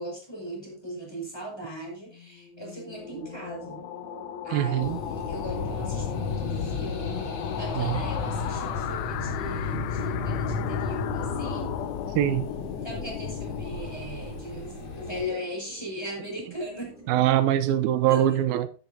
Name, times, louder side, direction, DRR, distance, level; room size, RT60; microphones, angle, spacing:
voice 1, 0.0-3.8 4.4-11.8 12.8-17.2 18.1-18.4, equal, 5° left, 5.5 m, -38 dB
sound 1, 2.1-14.7, left 10 dB, 85° left, 2.7 m, -36 dB
sound 2, 2.9-18.1, right 2 dB, 20° right, 7.1 m, -49 dB
voice 2, 4.5-5.0 7.8-7.9 12.2-12.5 17.1-18.7, right 12 dB, 85° right, 2.7 m, -23 dB
sound 3, 4.8-15.3, left 4 dB, 50° left, 2.8 m, -33 dB
15.0 x 9.2 x 2.8 m
omnidirectional pair, 4.2 m